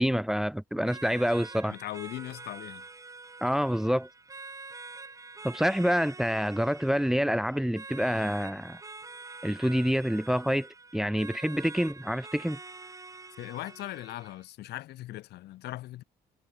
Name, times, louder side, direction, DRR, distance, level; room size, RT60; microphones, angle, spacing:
voice 1, 0.0-1.8 3.4-4.1 5.4-8.8 9.4-12.6, equal, ahead, 1.2 m, -27 dB
sound 1, 0.9-14.4, right 3 dB, 20° right, 3.9 m, -46 dB
voice 2, 1.7-2.8 13.4-16.0, left 15 dB, 75° left, 7.1 m, -39 dB
cardioid pair, 110°, 17 cm